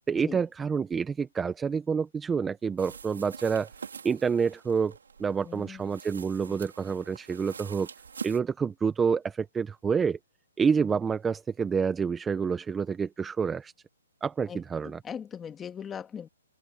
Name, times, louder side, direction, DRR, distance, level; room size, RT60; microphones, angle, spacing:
voice 1, 0.1-3.7 4.0-7.9 8.2-10.2 10.6-13.7 14.2-15.0, right 6 dB, 10° right, 0.9 m, -28 dB
sound 1, 2.8-8.4, right 6 dB, 80° right, 4.1 m, -45 dB
voice 2, 5.4-5.9 6.5-6.6 14.5-16.3, left 7 dB, 10° left, 2.3 m, -40 dB
hypercardioid pair, 155°, 0 cm